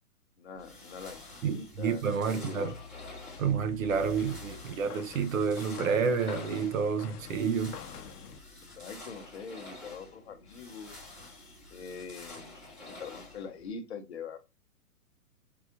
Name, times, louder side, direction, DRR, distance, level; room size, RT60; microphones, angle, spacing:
voice 1, 0.4-2.8 8.6-10.9 11.7-14.4, left 5 dB, 45° left, 0.8 m, -43 dB
sound 1, 0.5-13.7, left 2 dB, 10° right, 0.7 m, -49 dB
voice 2, 1.4-2.7 3.4-7.8, right 6 dB, 60° right, 0.7 m, -29 dB
sound 2, 2.7-8.4, left 7 dB, 80° left, 0.7 m, -46 dB
4.7 x 2.4 x 2.6 m
hypercardioid pair, 175°, 44 cm